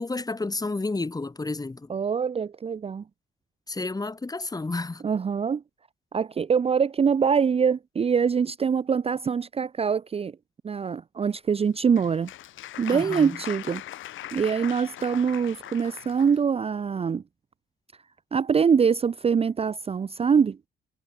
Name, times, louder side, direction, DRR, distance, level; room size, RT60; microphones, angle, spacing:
voice 1, 0.0-1.9 3.7-5.1 12.9-13.4, left 3 dB, 20° left, 2.0 m, -31 dB
voice 2, 1.9-3.0 5.0-5.6 6.1-10.3 10.6-12.3 12.8-13.8 14.3-17.2 18.3-20.6, right 6 dB, 30° right, 0.5 m, -24 dB
Applause, 11.6-16.4, left 13 dB, 80° left, 6.1 m, -40 dB
cardioid pair, 90°, 20 cm